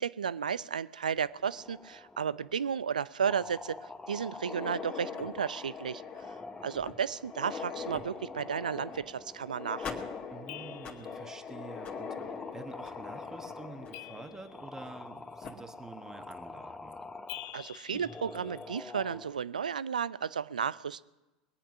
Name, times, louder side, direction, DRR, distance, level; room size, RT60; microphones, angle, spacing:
voice 1, 0.0-6.0 6.6-9.9 17.5-21.0, right 7 dB, 85° right, 19 dB, 0.4 m, -33 dB
sound 1, 1.2-2.7 3.2-4.9 5.3-5.8 6.1-11.1 11.6-11.7 12.2-13.8 14.5-19.4, left 3 dB, 15° left, 1.0 m, -47 dB
sound 2, 4.3-15.1 15.4-15.5 16.3-16.4 16.9-17.0 18.3-18.6, left 5 dB, 35° left, 2.1 m, -42 dB
voice 2, 10.3-17.0, right 3 dB, 10° right, 7 dB, 1.4 m, -48 dB
sound 3, 10.5-11.3 13.9-15.0 17.3-18.9, left 16 dB, 55° left, 0.5 m, -47 dB
21.5 x 8.8 x 6.1 m, 1.1 s
hypercardioid pair, 85°, 4 cm